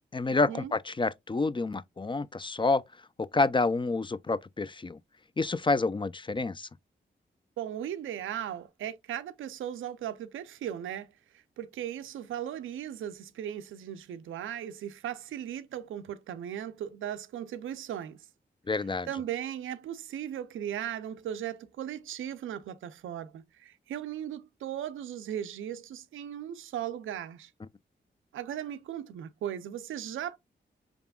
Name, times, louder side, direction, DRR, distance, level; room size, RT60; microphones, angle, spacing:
voice 1, 0.0-2.8 3.2-5.0 5.4-6.7 18.7-19.1, left 3 dB, 25° left, 0.4 m, -28 dB
voice 2, 7.6-18.3 19.1-27.5 28.3-30.4, right 10 dB, 90° right, 0.4 m, -37 dB
4.9 x 3.4 x 2.2 m
supercardioid pair, 40°, 20 cm